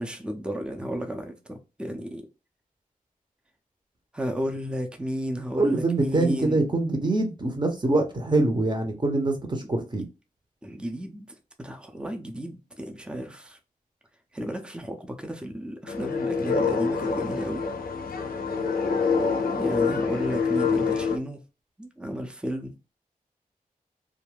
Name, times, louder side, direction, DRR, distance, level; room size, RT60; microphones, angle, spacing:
voice 1, 0.0-2.3 4.1-6.6 10.6-11.3 11.6-13.6 14.3-17.6 19.5-21.4 21.8-22.7, equal, 5° right, 0.6 m, -33 dB
voice 2, 5.5-10.0, right 2 dB, 30° right, 0.8 m, -24 dB
sound 1, 15.9-21.2, left 5 dB, 80° left, 0.5 m, -26 dB
2.4 x 2.1 x 3.3 m
cardioid pair, 50°, 15 cm